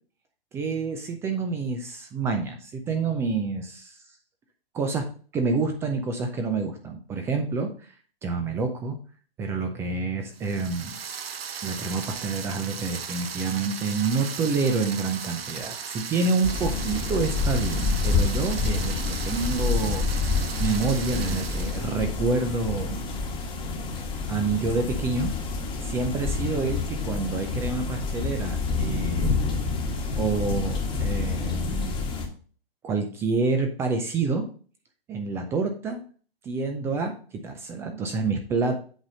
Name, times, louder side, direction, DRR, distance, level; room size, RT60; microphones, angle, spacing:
voice 1, 0.5-4.0 4.7-5.1 5.3-7.9 8.2-9.0 9.4-11.0 11.6-23.0 24.3-25.3 25.8-29.4 30.2-31.9 32.8-34.4 35.1-36.0 36.4-38.8, right 4 dB, 10° right, 5 dB, 0.4 m, -28 dB
sound 1, 10.3-22.1, right 7 dB, 70° right, 0.9 m, -37 dB
sound 2, 16.4-32.3, left 4 dB, 15° left, 1.3 m, -28 dB
7.9 x 4.1 x 5.1 m, 0.41 s
hypercardioid pair, 130°, 30 cm